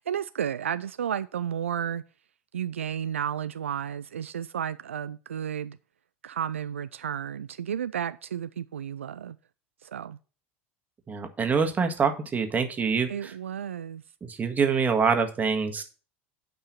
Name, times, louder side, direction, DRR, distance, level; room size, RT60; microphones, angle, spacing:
voice 1, 0.0-2.0 2.5-5.8 6.2-9.4 9.8-10.2 13.1-14.0, right 9 dB, 80° right, 0.3 m, -32 dB
voice 2, 11.1-13.3 14.2-15.8, right 5 dB, 25° right, 1.6 m, -25 dB
9.1 x 5.6 x 5.9 m
figure-of-eight pair, 80°, 7 cm